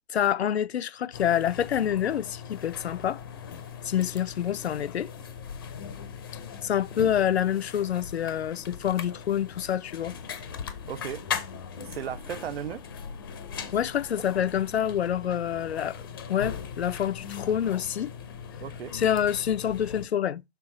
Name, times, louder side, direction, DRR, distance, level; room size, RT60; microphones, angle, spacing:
voice 1, 0.1-3.2 3.8-5.1 6.6-10.2 13.7-18.1 18.9-20.4, left 9 dB, 80° left, 0.5 m, -27 dB
sound 1, 1.1-20.1, left 7 dB, 20° left, 0.5 m, -39 dB
voice 2, 10.9-11.2 11.5-12.8 18.6-18.9, right 9 dB, 70° right, 0.5 m, -36 dB
6.7 x 3.5 x 4.3 m
hypercardioid pair, 145°, 32 cm